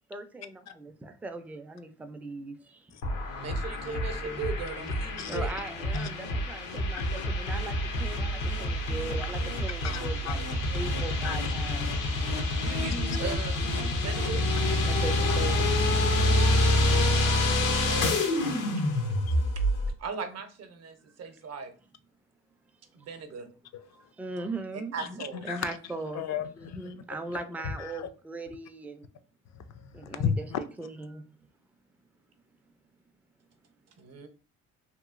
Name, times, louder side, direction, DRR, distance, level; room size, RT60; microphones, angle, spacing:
voice 1, 0.1-3.0 3.3-3.5 5.3-10.4 10.7-11.9 14.9-15.7 23.9-26.2 26.5-29.0 29.9-30.5 30.8-31.2, right 2 dB, 5° right, 0.3 m, -39 dB
sound 1, 3.0-19.9, left 1 dB, 90° left, 0.7 m, -27 dB
voice 2, 3.4-5.5 12.6-14.4 16.6-17.0 20.0-21.7 22.9-23.5 24.9-25.4 34.0-34.3, right 5 dB, 60° right, 0.7 m, -38 dB
voice 3, 9.8-10.4 11.2-11.5 15.3-15.4 23.7-23.8 25.0-25.1 25.5-25.8 26.1-26.9 27.6-28.1 29.5-30.9, left 7 dB, 60° left, 0.4 m, -34 dB
2.9 x 2.7 x 2.4 m
cardioid pair, 90°, 30 cm